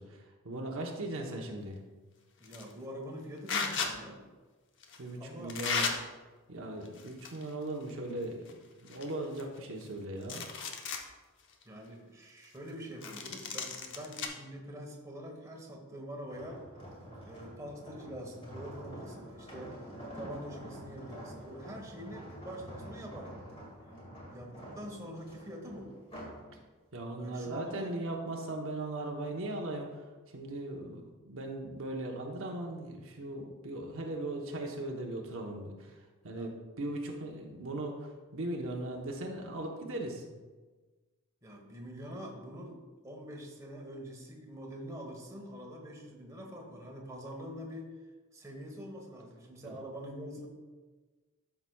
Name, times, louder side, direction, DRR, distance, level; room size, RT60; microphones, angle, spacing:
voice 1, 0.0-1.8 5.0-5.9 6.5-10.4 26.9-30.0 30.3-35.9 36.2-40.4 49.6-49.8, right 1 dB, 60° right, 1 dB, 0.9 m, -38 dB
sound 1, 2.4-2.7 3.5-3.9 4.8-5.0 5.5-5.9 6.9-7.5 7.8-7.9 8.5-8.6 8.9-9.9 10.2-11.0 11.5-11.6 13.0-14.3, left 5 dB, 55° left, 0.8 m, -35 dB
voice 2, 2.4-4.2 5.2-5.5 11.6-16.6 17.2-19.8 20.1-23.3 24.3-25.9 27.1-28.0 36.3-36.5 41.4-42.8 43.0-47.9 48.3-50.5, equal, 15° right, 0 dB, 1.2 m, -45 dB
sound 2, 16.3-26.5 26.9-27.2, equal, 25° left, 2.0 m, -47 dB
12.5 x 5.8 x 2.3 m, 1.3 s
head